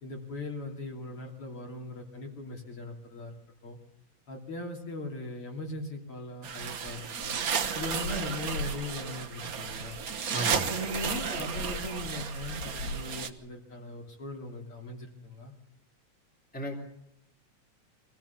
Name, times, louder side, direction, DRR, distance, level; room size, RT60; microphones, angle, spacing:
voice 1, 0.0-3.4 3.6-3.8 4.3-7.4 7.7-10.0 10.5-15.5, left 2 dB, 50° left, 1 dB, 3.6 m, -39 dB
sound 1, 6.4-13.3, right 7 dB, 65° right, 0.9 m, -33 dB
sound 2, 7.2-13.3, left 2 dB, 75° left, 3.0 m, -41 dB
voice 2, 10.3-10.7 16.5-16.8, right 1 dB, 5° left, 0 dB, 3.1 m, -34 dB
24.0 x 16.0 x 6.9 m, 0.80 s
omnidirectional pair, 3.3 m